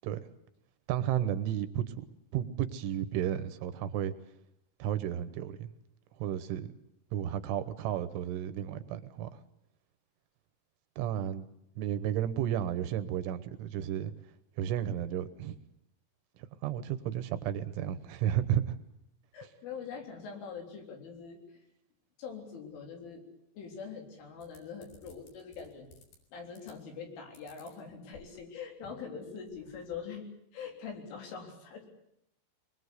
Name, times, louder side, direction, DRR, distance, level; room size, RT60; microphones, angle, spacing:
voice 1, 0.9-2.1 2.3-4.1 4.8-5.7 6.2-6.7 7.1-9.3 11.0-11.5 11.8-14.1 14.6-15.6 16.6-18.8, right 10 dB, 75° right, 12 dB, 3.4 m, -32 dB
voice 2, 19.3-21.6 22.2-23.3 23.5-25.9 26.3-30.2 30.5-31.9, left 6 dB, 70° left, 3 dB, 6.1 m, -43 dB
sound 1, 24.4-26.2 26.5-27.0 27.4-28.6 29.0-29.1 29.3-30.0, left 2 dB, 50° left, 5.7 m, -58 dB
24.0 x 22.0 x 8.2 m, 0.78 s
omnidirectional pair, 5.9 m